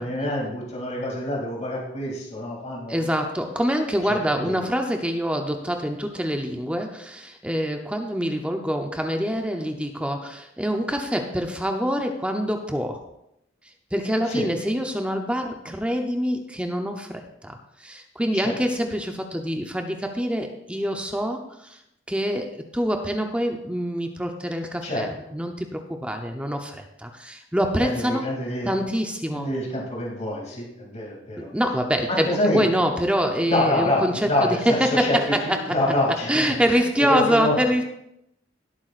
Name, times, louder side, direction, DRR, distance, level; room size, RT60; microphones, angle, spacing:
voice 1, 0.0-3.2 4.3-4.6 14.2-14.5 18.3-18.6 24.8-25.0 27.8-28.7 29.3-31.5 32.1-32.7 33.5-35.2 35.7-37.5, left 1 dB, 35° left, -3 dB, 2.6 m, -26 dB
voice 2, 2.9-13.0 13.9-21.8 22.1-28.3 28.7-29.5 31.4-35.8 36.3-37.8, equal, 5° right, 4 dB, 0.7 m, -25 dB
17.0 x 8.3 x 2.5 m, 0.80 s
head